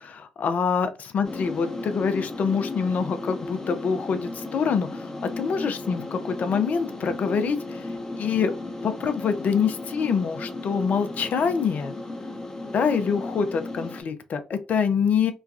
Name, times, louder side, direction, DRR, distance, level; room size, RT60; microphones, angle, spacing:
voice 1, 0.0-5.1 5.4-7.9 8.1-8.5 8.8-11.9 12.7-15.3, left 6 dB, 55° left, 0.5 m, -25 dB
sound 1, 1.2-14.0, left 2 dB, 20° left, 0.9 m, -35 dB
3.0 x 2.2 x 2.5 m
hypercardioid pair, 45°, 3 cm